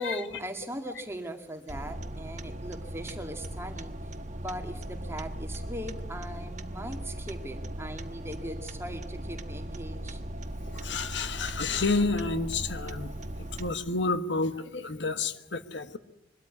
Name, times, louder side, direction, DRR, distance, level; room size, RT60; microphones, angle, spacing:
voice 1, 0.0-4.0 4.3-10.2, equal, 15° right, 5 dB, 2.1 m, -39 dB
sound 1, 1.7-13.7, right 1 dB, 40° right, 1.1 m, -38 dB
voice 2, 10.7-13.1 13.6-16.0, left 3 dB, 80° left, 10 dB, 1.4 m, -30 dB
23.0 x 13.0 x 9.6 m, 0.83 s
head